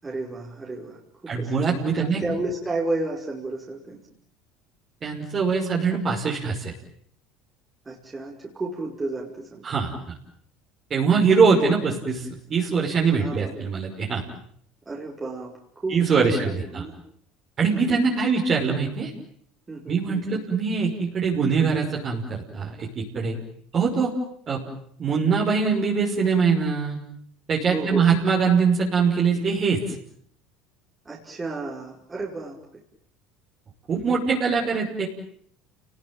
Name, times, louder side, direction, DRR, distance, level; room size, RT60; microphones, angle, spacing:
voice 1, 0.0-4.1 7.9-9.6 13.1-13.5 14.9-17.0 17.7-18.0 19.7-20.4 27.7-28.1 31.1-32.6, right 2 dB, 20° right, -2 dB, 5.2 m, -32 dB
voice 2, 1.3-2.2 5.0-6.7 9.6-9.9 10.9-14.2 15.9-16.8 17.6-19.1 19.9-23.3 23.7-24.1 24.5-24.6 25.0-27.0 27.5-30.0 33.9-35.1, right 5 dB, 40° right, -2 dB, 5.8 m, -22 dB
29.5 x 20.0 x 9.1 m, 0.65 s
supercardioid pair, 85°, 0 cm